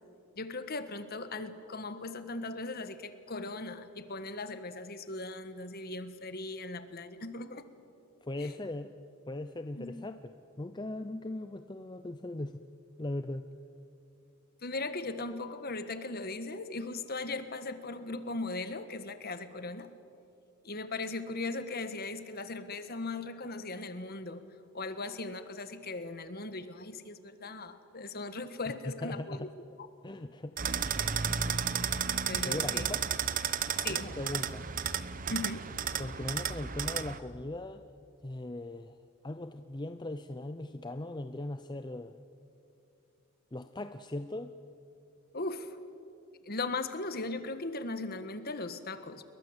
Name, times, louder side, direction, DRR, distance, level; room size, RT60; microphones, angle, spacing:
voice 1, 0.4-7.7 8.4-8.5 9.8-10.1 14.6-19.9 20.6-24.4 24.7-29.5 32.3-32.9 33.8-34.1 35.3-35.7 45.3-45.8 46.4-49.2, left 2 dB, 45° left, 11 dB, 1.5 m, -38 dB
voice 2, 8.2-8.9 9.3-10.2 10.6-12.6 13.0-13.5 29.0-29.5 30.0-30.6 32.4-33.1 33.9-34.7 36.0-37.8 38.2-39.0 39.2-42.2 43.5-44.5, left 1 dB, 20° left, 9 dB, 0.6 m, -39 dB
sound 1, 30.6-37.2, right 7 dB, 40° right, 0.8 m, -33 dB
29.0 x 22.5 x 8.1 m, 2.6 s
head